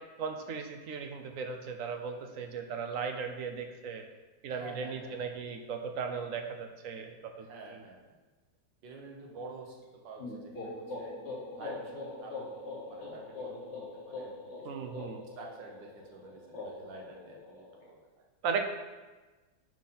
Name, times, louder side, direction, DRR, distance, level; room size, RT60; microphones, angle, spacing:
voice 1, 0.2-4.0 4.4-7.8 14.6-15.2 18.4-18.7, right 5 dB, 60° right, 5 dB, 0.9 m, -37 dB
voice 2, 4.5-5.4 7.4-8.2 8.8-11.2 11.5-14.9 15.3-18.3, right 3 dB, 85° right, 0 dB, 1.8 m, -49 dB
sound 1, 10.2-17.9, left 2 dB, 40° left, 1.5 m, -43 dB
10.5 x 4.0 x 4.2 m, 1.2 s
omnidirectional pair, 1.9 m